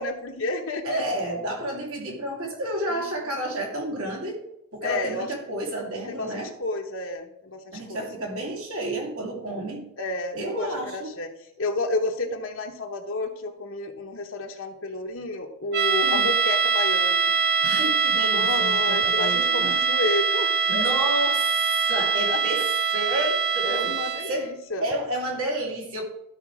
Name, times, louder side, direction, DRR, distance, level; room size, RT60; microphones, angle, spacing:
voice 1, 0.0-1.3 4.8-5.3 6.1-8.1 10.0-11.3 11.6-17.3 18.3-20.9 22.2-22.4 23.6-24.8, left 2 dB, 60° left, 2 dB, 1.0 m, -31 dB
voice 2, 0.8-4.4 4.7-6.5 7.7-9.9 10.3-11.1 16.0-16.4 17.6-19.8 20.7-22.6 22.9-23.9 24.3-26.0, right 1 dB, 75° right, -1 dB, 2.8 m, -31 dB
sound 1, 15.7-24.4, right 5 dB, 50° right, 0.7 m, -23 dB
12.5 x 4.8 x 4.8 m, 0.81 s
head